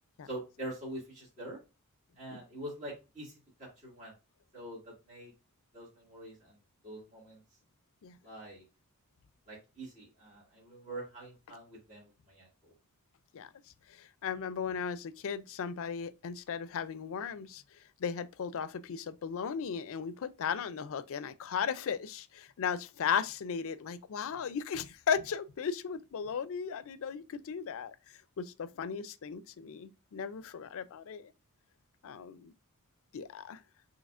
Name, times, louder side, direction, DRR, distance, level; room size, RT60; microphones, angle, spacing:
voice 1, 0.2-1.6 2.2-3.3 3.6-4.1 4.5-5.3 5.7-6.6 6.8-7.4 8.2-8.6 9.5-12.7, right 1 dB, 35° right, 2.2 m, -45 dB
voice 2, 13.9-17.6 18.0-28.0 28.4-31.3 32.0-32.5 33.1-33.6, left 7 dB, 65° left, 0.4 m, -36 dB
6.4 x 3.1 x 2.4 m
head